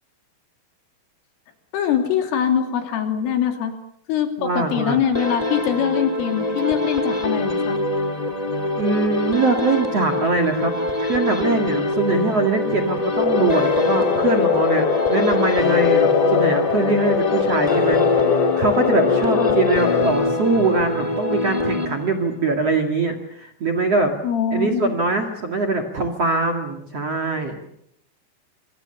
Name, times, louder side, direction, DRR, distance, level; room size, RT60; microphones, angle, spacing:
voice 1, 1.7-3.7 4.1-7.8 19.3-19.6 24.2-24.9, left 8 dB, 90° left, 5 dB, 5.3 m, -23 dB
voice 2, 4.4-5.0 8.8-24.1 24.5-27.6, right 3 dB, 45° right, 7 dB, 2.3 m, -22 dB
sound 1, 5.1-22.4, left 2 dB, 25° left, 0.7 m, -24 dB
sound 2, 13.2-20.1, left 7 dB, 45° left, 3.2 m, -21 dB
27.0 x 25.5 x 7.0 m, 0.73 s
omnidirectional pair, 5.6 m